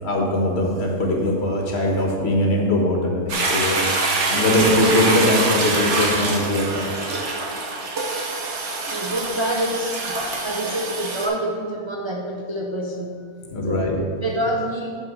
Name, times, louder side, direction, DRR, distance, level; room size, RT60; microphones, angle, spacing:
voice 1, 0.0-6.8 13.5-14.0, left 1 dB, 50° left, 0 dB, 1.5 m, -21 dB
Toilet flush, 3.3-11.3, right 3 dB, 60° right, 1.4 m, -25 dB
voice 2, 8.8-13.3 13.6-15.0, right 1 dB, 40° right, 0 dB, 0.4 m, -27 dB
10.5 x 4.7 x 4.9 m, 2.2 s
omnidirectional pair, 1.4 m